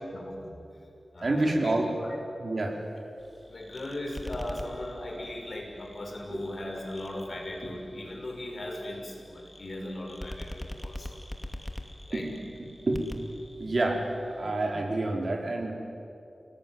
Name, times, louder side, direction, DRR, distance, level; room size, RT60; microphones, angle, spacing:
voice 1, 0.1-0.6 1.1-1.7 2.0-2.2 3.5-11.2 12.1-12.3, left 1 dB, 55° left, 1 dB, 6.3 m, -38 dB
voice 2, 1.2-1.9 2.4-2.8 6.3-6.4 12.1-12.3 12.9-13.0 13.6-15.7, right 2 dB, 55° right, 1 dB, 4.6 m, -28 dB
sound 1, 3.2-14.5, left 1 dB, 15° left, 2.6 m, -44 dB
29.5 x 18.5 x 9.6 m, 2.7 s
wide cardioid pair, 80°, 0 cm